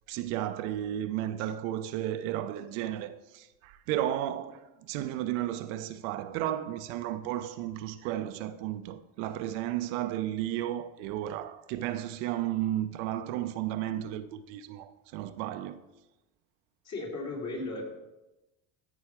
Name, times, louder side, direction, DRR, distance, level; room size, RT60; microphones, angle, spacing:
voice 1, 0.1-15.8, right 12 dB, 90° right, 0.7 m, -33 dB
voice 2, 16.8-17.8, left 2 dB, 50° left, 3.1 m, -35 dB
13.5 x 4.7 x 4.6 m
supercardioid pair, 100°, 36 cm